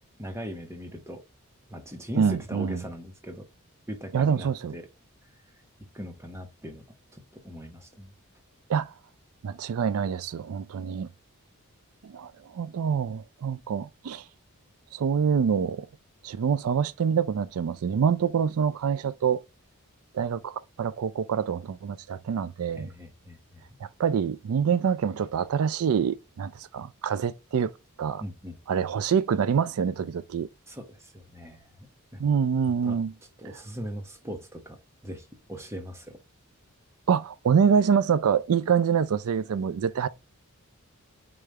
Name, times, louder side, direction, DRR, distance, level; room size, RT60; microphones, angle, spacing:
voice 1, 0.2-1.2 1.7-3.5 3.9-4.9 5.9-6.8 7.1-8.1 22.7-23.6 28.2-28.6 30.7-31.9 32.1-32.2 32.6-33.0 33.4-34.8 35.0-36.2, equal, 10° right, 0.9 m, -40 dB
voice 2, 2.2-2.8 4.1-4.7 8.7-8.9 9.4-11.1 12.0-14.2 14.9-15.9 16.2-19.4 20.1-22.9 23.8-27.7 28.0-28.2 28.7-30.5 32.2-33.1 37.1-40.1, right 7 dB, 80° right, 0.4 m, -26 dB
5.0 x 2.4 x 4.2 m
head